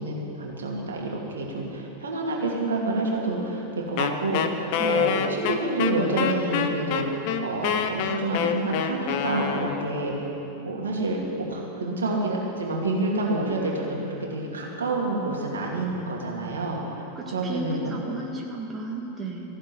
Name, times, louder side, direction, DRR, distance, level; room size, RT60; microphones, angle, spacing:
voice 1, 0.0-10.3 10.6-14.0 14.3-17.0 17.3-17.9, right 2 dB, 70° right, -2 dB, 2.6 m, -28 dB
Wind instrument woodwind instrument, 4.0-10.0, left 8 dB, 45° left, 0.9 m, -26 dB
voice 2, 17.2-19.4, right 2 dB, 20° right, -2 dB, 1.9 m, -33 dB
15.5 x 7.5 x 9.9 m, 3.0 s
figure-of-eight pair, 90°, 0 cm